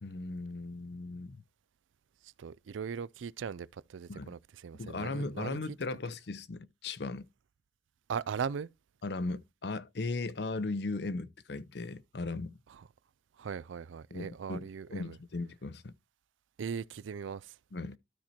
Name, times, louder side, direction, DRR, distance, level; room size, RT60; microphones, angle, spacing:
voice 1, 0.0-1.4 4.1-4.3 4.8-7.3 9.0-12.6 14.1-15.9 17.7-18.0, left 3 dB, 60° left, 0.6 m, -37 dB
voice 2, 2.4-5.6 8.1-8.7 12.7-12.8 13.4-15.2 16.6-17.5, right 6 dB, 85° right, 0.4 m, -39 dB
12.5 x 4.4 x 4.3 m
head